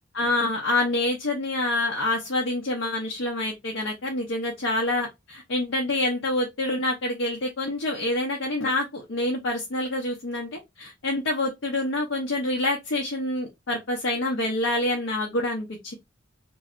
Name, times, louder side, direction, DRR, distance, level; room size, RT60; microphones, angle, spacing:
voice 1, 0.1-15.9, left 2 dB, 90° left, 0.8 m, -27 dB
3.1 x 2.6 x 2.4 m
head